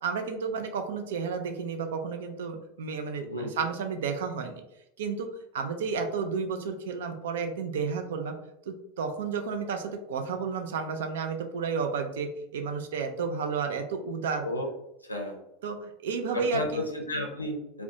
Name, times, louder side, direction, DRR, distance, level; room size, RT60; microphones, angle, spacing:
voice 1, 0.0-4.6 5.0-5.3 5.5-8.3 8.7-14.5 15.6-16.9, right 5 dB, 65° right, 5 dB, 0.3 m, -32 dB
voice 2, 3.2-3.7 14.4-14.7 15.0-15.4 16.3-17.8, left 1 dB, 90° left, 1 dB, 0.4 m, -33 dB
2.4 x 2.1 x 2.7 m, 0.84 s
figure-of-eight pair, 80°, 0 cm